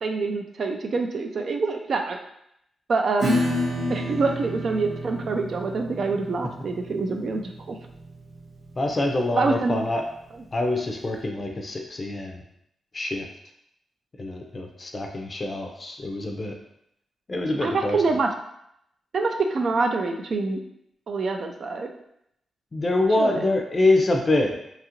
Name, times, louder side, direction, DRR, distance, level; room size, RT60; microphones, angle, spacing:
voice 1, 0.0-2.2 2.9-3.4 3.9-7.4 7.7-7.8 9.3-9.8 17.6-18.3 19.1-20.6 21.1-21.9 23.2-23.5, right 3 dB, 60° right, 4 dB, 0.4 m, -25 dB
Acoustic guitar / Strum, 3.2-10.4, left 1 dB, 80° right, 1.4 m, -31 dB
voice 2, 8.8-10.1 10.5-12.4 12.9-13.3 14.2-16.5 17.3-18.2 22.7-24.6, left 2 dB, 35° left, 3 dB, 0.4 m, -25 dB
2.8 x 2.5 x 2.8 m, 0.76 s
cardioid pair, 85°, 0 cm